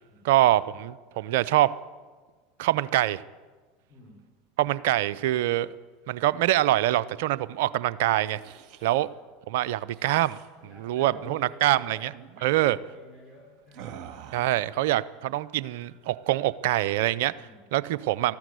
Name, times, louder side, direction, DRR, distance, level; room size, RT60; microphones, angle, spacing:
voice 1, 0.2-1.7 2.6-3.2 4.6-5.8 6.1-8.4 8.8-9.1 9.5-10.4 10.8-12.1 12.4-12.8 14.3-17.3 17.7-18.4, right 14 dB, 65° right, 17 dB, 0.5 m, -24 dB
voice 2, 3.9-4.2 8.9-9.2 10.6-14.0 17.3-17.7, left 2 dB, 20° left, -4 dB, 5.0 m, -50 dB
sound 1, 8.1-9.0 9.9-10.5 11.1-11.4 11.6-11.8 12.1-12.4 13.7-14.7, right 9 dB, 50° right, 2.0 m, -46 dB
13.5 x 12.0 x 8.1 m, 1.4 s
hypercardioid pair, 80°, 0 cm